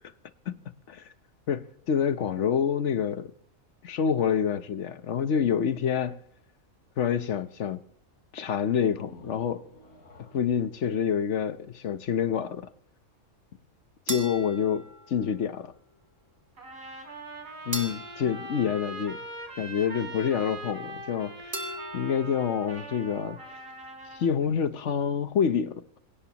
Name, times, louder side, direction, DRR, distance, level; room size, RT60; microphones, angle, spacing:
voice 1, 1.5-3.3 3.8-6.2 7.0-7.8 8.3-9.6 10.3-12.7 14.1-15.7 17.7-19.2 19.6-21.7 21.9-23.4 24.1-26.0, left 7 dB, 60° left, 1.1 m, -27 dB
sound 1, 8.8-12.4, left 1 dB, 80° left, 3.8 m, -53 dB
sound 2, 14.1-15.6 17.7-19.6 21.5-22.7, right 1 dB, 35° right, 2.3 m, -39 dB
Trumpet, 16.6-24.3, right 2 dB, 80° right, 3.7 m, -42 dB
27.0 x 17.0 x 2.9 m
omnidirectional pair, 1.5 m